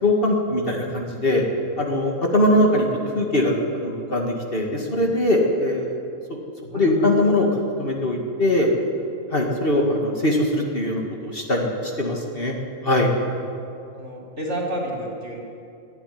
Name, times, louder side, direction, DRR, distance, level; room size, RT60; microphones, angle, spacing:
voice 1, 0.0-1.4 1.8-2.9 3.1-5.9 6.3-6.4 6.7-7.5 7.8-8.7 9.3-12.5 12.8-13.1, left 1 dB, 40° left, 0 dB, 2.4 m, -21 dB
voice 2, 6.6-7.4 9.7-9.9 13.9-15.4, equal, 55° right, -2 dB, 4.3 m, -31 dB
23.0 x 12.0 x 9.6 m, 2.6 s
omnidirectional pair, 1.5 m